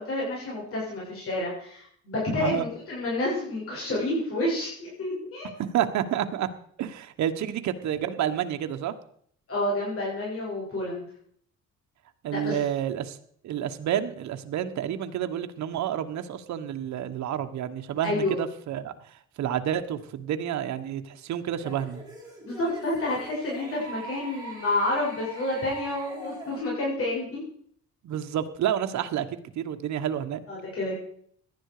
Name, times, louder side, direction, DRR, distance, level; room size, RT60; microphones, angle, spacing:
voice 1, 0.0-5.5 9.5-11.1 12.3-12.6 18.0-18.4 22.4-27.4 30.5-31.0, left 1 dB, 50° left, -4 dB, 7.2 m, -29 dB
voice 2, 5.7-6.5 6.8-8.9 12.2-13.2 13.4-18.9 19.4-22.0 28.0-29.3 29.5-30.4, right 10 dB, 70° right, 8 dB, 1.4 m, -29 dB
sound 1, 21.5-26.6, right 1 dB, 15° right, 5.6 m, -42 dB
17.5 x 11.5 x 5.0 m, 0.62 s
cardioid pair, 145°, 29 cm